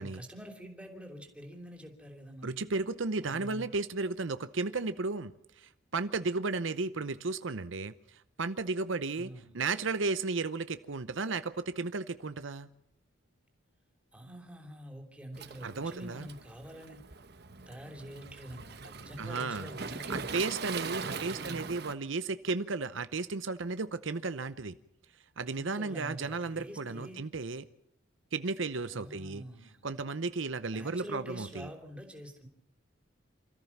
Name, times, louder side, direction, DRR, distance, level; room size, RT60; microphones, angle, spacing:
voice 1, 0.0-2.6 3.2-3.7 9.1-9.5 14.1-17.1 17.7-20.5 20.9-21.7 25.5-27.2 28.9-29.9 30.6-32.5, equal, 5° right, 3 dB, 3.2 m, -46 dB
voice 2, 2.4-7.9 8.4-12.7 15.6-16.3 19.2-19.7 20.1-24.8 25.4-27.6 28.3-29.4 29.8-31.6, right 3 dB, 70° right, 12 dB, 0.8 m, -34 dB
Waves surf, 15.3-21.9, right 4 dB, 50° right, 1.1 m, -41 dB
27.0 x 14.5 x 7.2 m, 0.78 s
head